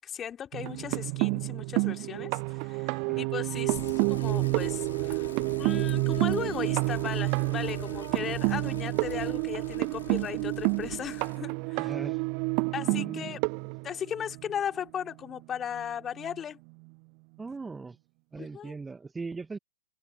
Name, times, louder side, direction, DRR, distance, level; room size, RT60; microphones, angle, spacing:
voice 1, 0.0-5.3 5.6-11.9 12.7-13.4 13.8-16.6 18.4-18.7, left 9 dB, 20° left, 3.0 m, -37 dB
sound 1, 0.5-14.5 15.8-15.9 16.2-16.4, right 40 dB or more, 40° right, 0.5 m, -29 dB
Bicycle, 3.7-11.4, left 8 dB, 65° left, 2.0 m, -45 dB
voice 2, 11.7-12.2 12.9-13.4 17.4-18.0 18.3-19.6, right 4 dB, 10° right, 1.4 m, -39 dB
figure-of-eight pair, 105°, 0 cm